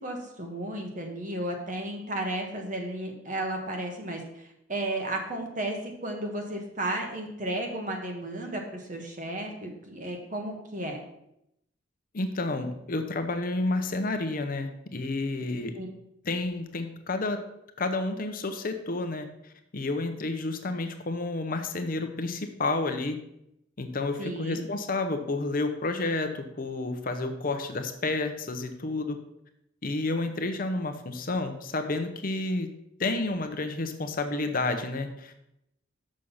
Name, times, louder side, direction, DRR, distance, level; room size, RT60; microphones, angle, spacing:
voice 1, 0.0-11.0 15.7-15.9 24.2-24.6, right 1 dB, 40° right, 2 dB, 1.4 m, -33 dB
voice 2, 12.1-15.8 16.2-17.4 17.8-19.3 19.7-23.2 23.8-29.2 29.8-32.7 33.0-35.5, left 2 dB, 45° left, 7 dB, 0.7 m, -30 dB
6.4 x 6.3 x 5.5 m, 0.80 s
head